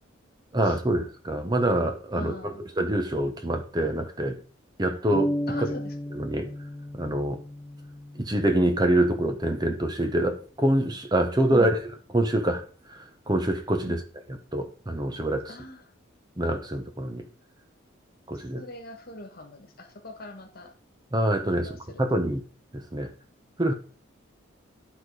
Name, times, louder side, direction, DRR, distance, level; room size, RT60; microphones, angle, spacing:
voice 1, 0.5-4.4 4.8-5.7 6.1-6.5 6.9-7.4 8.2-11.8 12.1-14.0 14.5-15.5 16.4-17.2 18.3-18.6 21.1-21.7 22.0-22.4 22.7-23.1 23.6-23.7, right 1 dB, 20° right, 6 dB, 0.8 m, -25 dB
voice 2, 2.1-2.6 5.5-5.9 11.5-11.7 13.8-13.9 15.5-15.8 18.3-20.7 21.5-22.0, left 2 dB, 45° left, 6 dB, 1.4 m, -41 dB
sound 1, 5.1-8.9, left 1 dB, 10° left, 0.6 m, -33 dB
11.5 x 4.0 x 4.8 m, 0.41 s
head